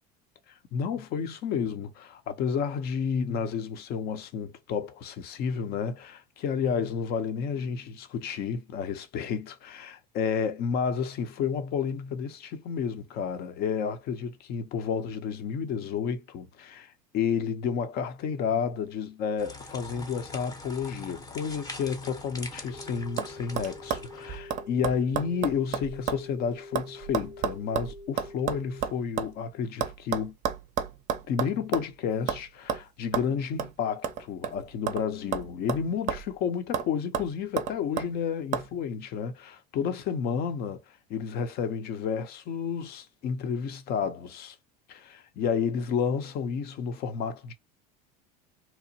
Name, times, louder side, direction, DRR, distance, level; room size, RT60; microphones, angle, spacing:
voice 1, 0.7-30.4 31.3-40.8 41.1-44.6 44.9-47.5, left 6 dB, 50° left, 0.7 m, -31 dB
sound 1, 19.4-24.4, left 2 dB, 15° left, 0.7 m, -43 dB
sound 2, 22.4-22.8 23.2-23.3 23.6-26.3 26.5-29.3 29.8-31.9 32.3-32.4 32.7-32.8 33.1-33.3 33.6-33.7 34.0-35.1 35.3-36.4 36.7-36.9 37.1-38.1 38.5-38.7, right 8 dB, 40° right, 0.5 m, -31 dB
sound 3, 22.7-28.8, left 3 dB, 75° left, 1.0 m, -46 dB
2.9 x 2.1 x 2.6 m
supercardioid pair, 95°, 20 cm